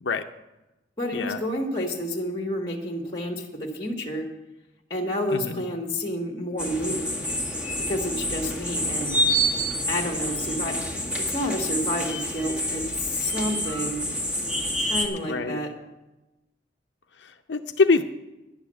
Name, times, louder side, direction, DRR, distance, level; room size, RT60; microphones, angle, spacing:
voice 1, 1.0-4.3 4.9-7.0 7.9-9.2 9.9-10.8 11.3-14.0 14.8-15.7, equal, 25° left, 1 dB, 1.5 m, -29 dB
voice 2, 5.3-5.6 15.2-15.6 17.2-18.0, left 4 dB, 85° left, 5 dB, 0.6 m, -24 dB
sound 1, 6.6-15.1, equal, 5° right, 1.7 m, -28 dB
11.0 x 7.0 x 8.8 m, 1.0 s
head